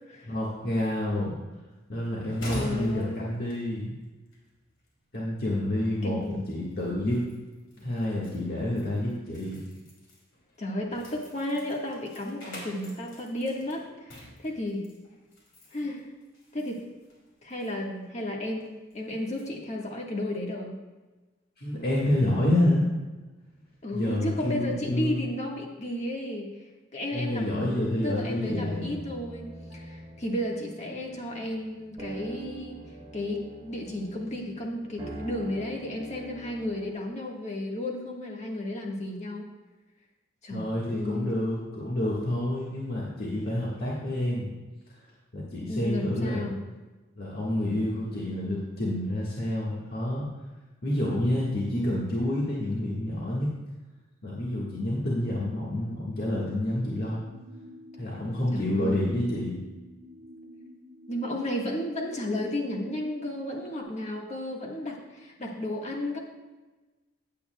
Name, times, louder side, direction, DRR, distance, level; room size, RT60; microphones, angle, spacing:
voice 1, 0.2-1.4 1.9-4.0 5.1-7.3 7.8-9.6 21.6-22.9 23.9-25.3 27.1-28.9 40.5-44.5 44.9-45.0 45.3-46.5 47.1-50.3 50.8-53.5 54.2-57.2 58.0-59.6, left 1 dB, 50° left, -6 dB, 1.6 m, -28 dB
sound 1, 1.7-19.4, equal, 70° left, 2.8 m, -48 dB
voice 2, 2.5-3.3 6.0-6.5 10.6-14.8 15.7-16.0 16.5-16.8 17.4-20.8 23.8-26.5 26.9-29.5 29.7-32.8 33.1-39.5 40.4-40.7 40.9-41.3 45.7-46.6 58.5-59.1 61.1-66.2, left 1 dB, 35° left, 0 dB, 1.5 m, -33 dB
sound 2, 27.9-36.9, right 1 dB, 25° right, 2.6 m, -44 dB
sound 3, 56.2-63.8, equal, 75° right, 1.6 m, -49 dB
15.5 x 8.4 x 2.3 m, 1.2 s
head